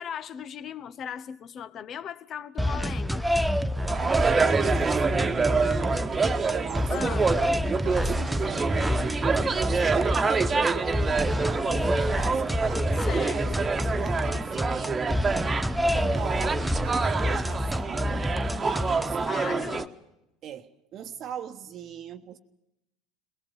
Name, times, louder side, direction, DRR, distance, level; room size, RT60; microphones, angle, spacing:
voice 1, 0.0-3.3 6.9-7.3 13.1-13.4 19.3-19.9, left 8 dB, 45° left, 1.0 m, -37 dB
sound 1, 2.6-19.3, left 1 dB, ahead, 0.8 m, -29 dB
sound 2, 3.8-19.8, right 4 dB, 25° right, 1.4 m, -27 dB
voice 2, 3.9-8.9 9.7-12.9 13.3-15.0 15.9-18.3 18.6-19.8 20.4-22.4, right 8 dB, 50° right, 1.2 m, -40 dB
22.0 x 18.0 x 7.3 m
hypercardioid pair, 70°, 0 cm